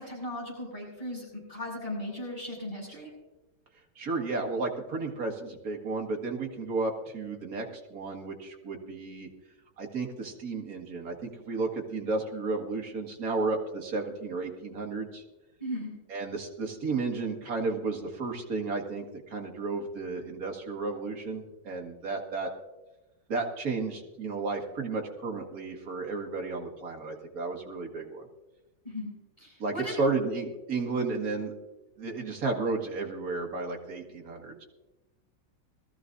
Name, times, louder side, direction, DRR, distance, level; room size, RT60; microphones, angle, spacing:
voice 1, 0.0-3.1 15.6-15.9 28.8-29.9, left 1 dB, 20° left, -5 dB, 6.3 m, -37 dB
voice 2, 4.0-7.7 7.9-9.3 9.8-15.2 16.1-22.5 23.3-28.2 29.6-31.5 32.0-34.6, right 3 dB, 50° right, 1 dB, 2.1 m, -33 dB
21.0 x 13.5 x 2.6 m, 1.1 s
omnidirectional pair, 1.9 m